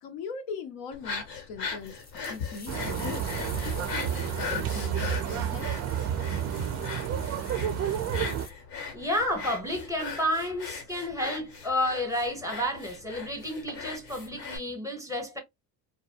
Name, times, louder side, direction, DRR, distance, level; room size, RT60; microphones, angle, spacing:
voice 1, 0.0-2.0 2.3-3.2 3.6-5.7, left 6 dB, 60° left, 0.6 m, -40 dB
sound 1, 0.9-14.6, left 5 dB, 80° left, 1.1 m, -39 dB
sound 2, 1.9-8.5, left 4 dB, 20° left, 0.6 m, -47 dB
sound 3, 2.7-8.5, right 9 dB, 35° right, 0.4 m, -30 dB
voice 2, 8.9-15.4, left 1 dB, 5° right, 0.9 m, -31 dB
2.2 x 2.0 x 2.7 m
hypercardioid pair, 75°, 48 cm